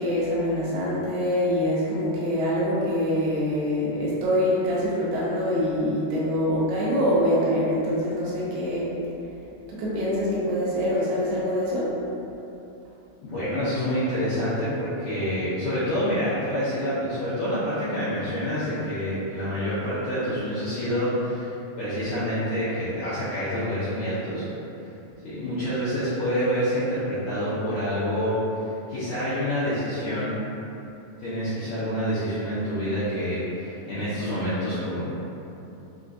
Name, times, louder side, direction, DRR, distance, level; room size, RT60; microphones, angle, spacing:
voice 1, 0.0-8.9 9.7-11.9, equal, 80° right, -7 dB, 2.7 m, -24 dB
voice 2, 13.2-24.5 25.2-28.4 28.9-30.3 31.2-35.1, equal, 75° left, -13 dB, 2.0 m, -27 dB
6.6 x 2.4 x 2.5 m, 2.9 s
omnidirectional pair, 4.8 m